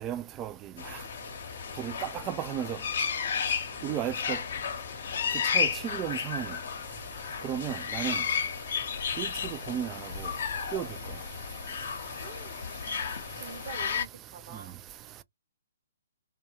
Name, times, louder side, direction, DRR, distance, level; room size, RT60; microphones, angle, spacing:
voice 1, 0.0-0.5 1.8-2.8 3.8-4.4 5.5-6.5 7.4-8.2 9.2-9.3 9.7-9.9 10.7-10.9, right 10 dB, 25° right, 0.3 m, -33 dB
sound 1, 0.8-14.1, left 6 dB, 60° left, 0.7 m, -33 dB
voice 2, 12.2-12.6 13.3-14.8, right 7 dB, 45° right, 0.8 m, -45 dB
2.2 x 2.2 x 2.8 m
hypercardioid pair, 135°, 0 cm